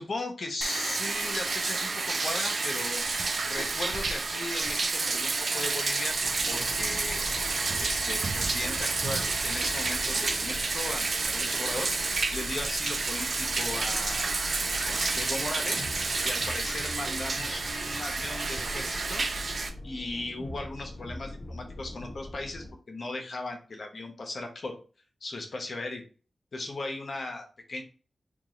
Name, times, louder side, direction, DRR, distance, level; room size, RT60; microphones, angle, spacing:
voice 1, 0.0-3.0 3.5-6.2 6.5-7.2 7.8-11.9 12.3-15.9 16.2-19.3 19.8-24.8 25.2-26.0 26.5-27.8, left 2 dB, 65° left, 3 dB, 0.9 m, -37 dB
Bathtub (filling or washing), 0.6-19.7, right 3 dB, 60° right, 0.5 m, -30 dB
sound 1, 6.1-22.7, left 1 dB, 35° left, 0.8 m, -42 dB
3.4 x 2.4 x 3.0 m, 0.36 s
cardioid pair, 60°, 0 cm